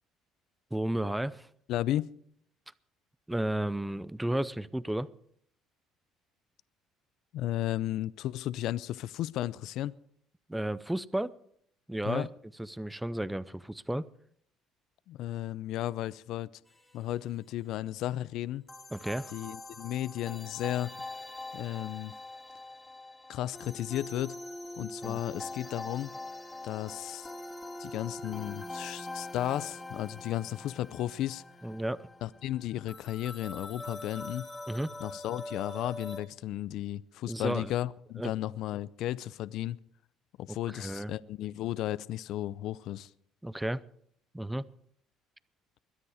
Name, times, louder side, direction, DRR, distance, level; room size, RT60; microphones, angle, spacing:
voice 1, 0.7-1.5 3.3-5.1 10.5-11.3 11.9-12.3 12.6-14.1 18.9-19.3 25.0-25.2 31.6-32.1 34.7-34.9 37.3-37.7 38.2-38.3 40.5-41.1 43.4-43.8 44.3-44.6, right 1 dB, 5° right, 0.6 m, -33 dB
voice 2, 1.7-2.1 7.3-9.9 12.0-12.3 15.1-16.5 16.9-18.6 19.3-20.9 21.5-22.1 23.3-24.4 24.8-26.1 26.6-27.3 27.8-31.4 32.2-34.5 35.0-39.8 40.4-43.1, left 13 dB, 70° left, 0.5 m, -34 dB
sound 1, 16.7-17.4 18.7-36.2, left 2 dB, 10° left, 2.5 m, -43 dB
22.0 x 9.9 x 4.9 m
cardioid pair, 100°, 0 cm